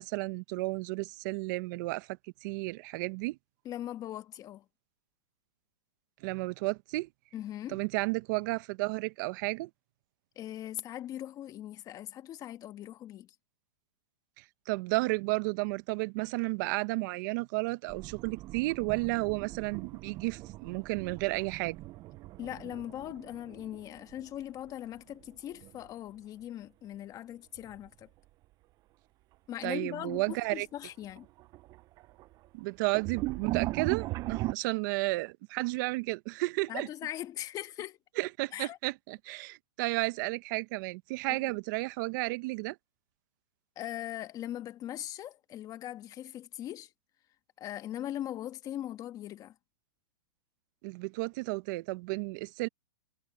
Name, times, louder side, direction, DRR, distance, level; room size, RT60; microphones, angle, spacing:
voice 1, 0.0-3.4 6.2-7.1 7.7-9.7 14.4-21.8 29.6-30.7 32.5-36.9 38.2-42.8 50.8-52.7, right 24 dB, 45° right, 1.0 m, -32 dB
voice 2, 3.7-4.6 7.3-7.8 10.4-13.3 22.4-28.1 29.5-31.3 36.7-38.0 38.5-38.8 41.3-41.5 43.8-46.9 47.6-49.5, left 12 dB, 25° left, 1.8 m, -40 dB
sound 1, 17.9-24.7 25.0-25.9 27.6-27.9 28.4-28.5 29.5-29.6 30.0-30.5 30.8-34.5, right 19 dB, 25° right, 0.5 m, -39 dB
hypercardioid pair, 140°, 14 cm